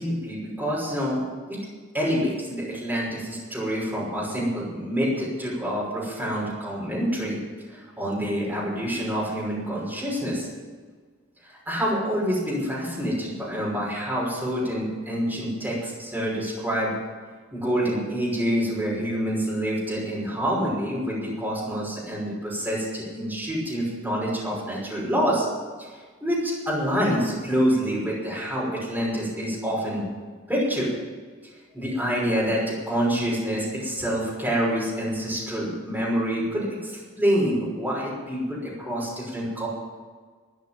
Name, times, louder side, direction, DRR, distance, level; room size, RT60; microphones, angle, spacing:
voice 1, 0.0-1.6 1.9-7.4 7.7-10.5 11.4-16.9 17.5-25.5 25.8-30.1 30.5-30.9 31.7-39.7, equal, 10° right, -6 dB, 5.8 m, -27 dB
13.5 x 10.5 x 9.2 m, 1.5 s
head